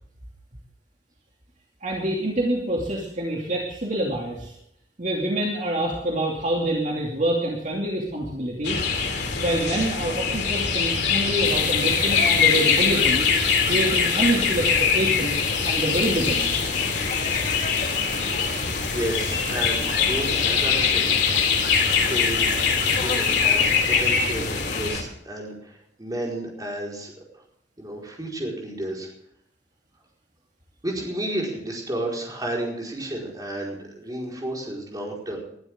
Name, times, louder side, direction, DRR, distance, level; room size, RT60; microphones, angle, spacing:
voice 1, 1.8-4.5 5.0-8.8 9.4-13.3 13.6-16.6, right 1 dB, 45° right, -2 dB, 2.6 m, -26 dB
sound 1, 8.6-25.0, left 6 dB, 70° left, 3.0 m, -23 dB
sound 2, 11.4-24.9, left 4 dB, 45° left, 2.1 m, -33 dB
voice 2, 18.9-21.6 21.9-22.6 22.9-27.4 27.8-29.1 30.8-35.4, right 1 dB, 20° right, -2 dB, 4.8 m, -32 dB
21.0 x 12.0 x 3.7 m, 0.73 s
head